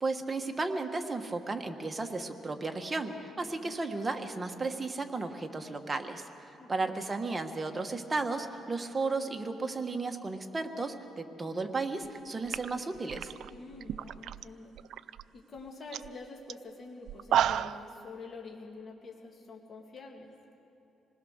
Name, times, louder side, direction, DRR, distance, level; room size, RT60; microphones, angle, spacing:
voice 1, 0.0-13.3, right 3 dB, 20° right, 4 dB, 1.5 m, -34 dB
voice 2, 3.4-3.8 6.6-7.0 13.5-14.7 15.3-20.3, left 3 dB, 35° left, 0 dB, 2.3 m, -47 dB
sound 1, 12.0-12.2 12.5-14.4 14.8-15.2 15.6-15.7 15.9-16.1 16.5-16.6 17.1-17.9, right 10 dB, 70° right, 0.4 m, -31 dB
26.5 x 19.5 x 6.6 m, 3.0 s
cardioid pair, 130°, 0 cm